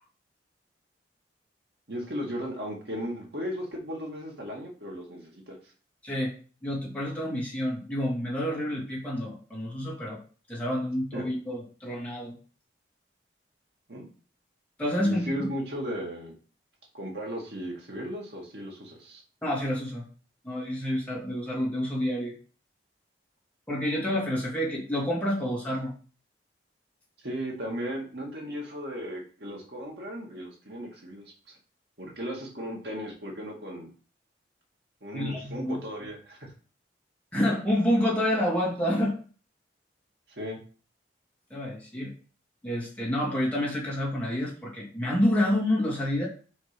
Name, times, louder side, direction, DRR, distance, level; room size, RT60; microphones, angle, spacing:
voice 1, 1.9-5.6 11.1-11.2 13.9-14.1 15.0-16.3 16.9-19.2 27.2-31.3 32.0-33.9 35.0-36.4 40.4-40.6, equal, 65° right, -1 dB, 2.2 m, -36 dB
voice 2, 6.6-10.2 10.5-12.4 14.8-15.3 19.4-20.1 20.4-22.4 23.7-25.9 35.1-35.8 37.3-39.2 41.5-42.1 42.6-46.3, left 1 dB, 10° left, -5 dB, 2.7 m, -28 dB
5.8 x 5.3 x 5.2 m, 0.40 s
head